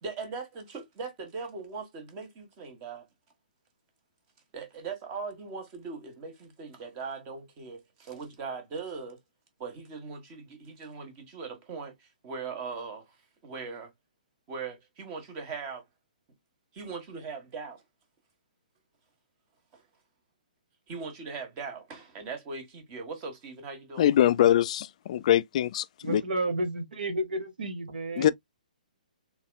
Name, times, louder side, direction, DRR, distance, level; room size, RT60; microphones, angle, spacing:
voice 1, 0.0-3.1 4.5-9.2 9.6-13.2 13.4-13.9 14.5-15.8 16.7-17.8 19.7-19.8 20.9-24.2, right 4 dB, 30° right, 1.6 m, -40 dB
voice 2, 24.0-26.2 28.2-28.3, left 11 dB, 50° left, 0.3 m, -23 dB
voice 3, 26.0-28.3, right 1 dB, 80° right, 1.6 m, -31 dB
4.0 x 3.7 x 2.3 m
hypercardioid pair, 140°, 5 cm